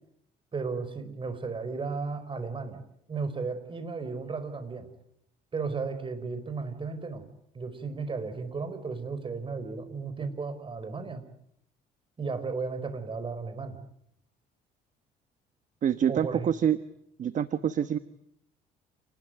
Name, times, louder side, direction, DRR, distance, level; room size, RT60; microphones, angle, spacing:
voice 1, 0.5-2.8 3.1-4.9 5.5-7.2 7.5-11.2 12.2-13.8 16.1-16.5, right 4 dB, 30° right, 11 dB, 5.0 m, -34 dB
voice 2, 15.8-16.8 17.2-18.0, right 9 dB, 50° right, 12 dB, 1.2 m, -26 dB
29.0 x 20.0 x 9.3 m, 0.73 s
cardioid pair, 110°, 17 cm